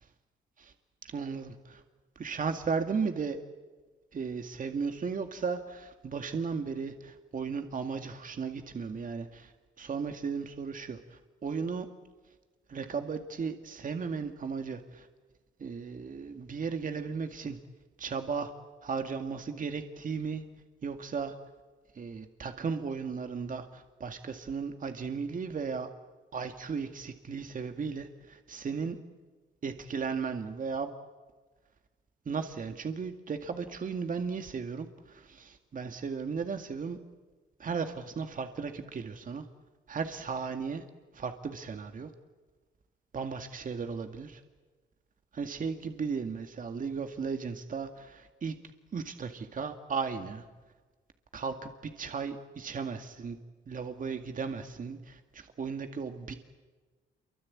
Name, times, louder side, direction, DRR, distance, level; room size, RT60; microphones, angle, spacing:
voice 1, 1.0-1.8 2.2-3.4 4.1-9.5 9.8-11.9 12.7-15.1 15.6-17.6 18.0-18.5 18.8-20.4 20.8-21.3 21.9-25.9 26.3-29.0 29.6-30.9 32.3-37.0 37.6-39.5 39.9-40.8 41.1-42.1 43.1-44.4 45.3-48.5 48.9-50.4 51.3-53.4 53.7-56.3, right 5 dB, 40° right, 6 dB, 2.1 m, -35 dB
28.5 x 24.5 x 8.7 m, 1.3 s
cardioid pair, 90°, 20 cm